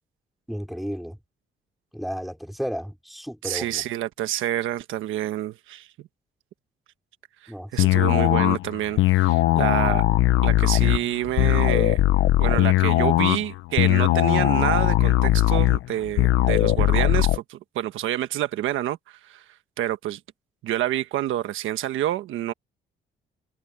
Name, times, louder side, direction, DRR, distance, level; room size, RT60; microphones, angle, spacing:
voice 1, 0.5-1.2 1.9-3.8 7.5-7.9, equal, ahead, 4.8 m, -33 dB
voice 2, 3.4-5.9 7.4-10.0 10.4-12.0 12.4-19.4 19.8-20.2 20.6-22.5, right 13 dB, 85° right, 1.3 m, -28 dB
sound 1, 7.8-17.4, left 15 dB, 85° left, 0.9 m, -20 dB
cardioid pair, 90°, 20 cm